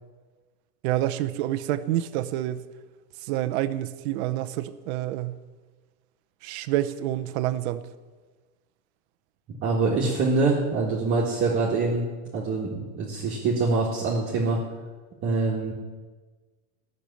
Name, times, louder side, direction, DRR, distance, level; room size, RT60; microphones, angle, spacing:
voice 1, 0.8-2.7 3.2-5.4 6.4-7.8, right 13 dB, 45° right, 13 dB, 0.8 m, -28 dB
voice 2, 9.5-12.0 12.3-14.6 15.2-15.7, right 3 dB, 25° right, -4 dB, 1.9 m, -24 dB
13.5 x 6.9 x 9.9 m, 1.4 s
supercardioid pair, 150°, 47 cm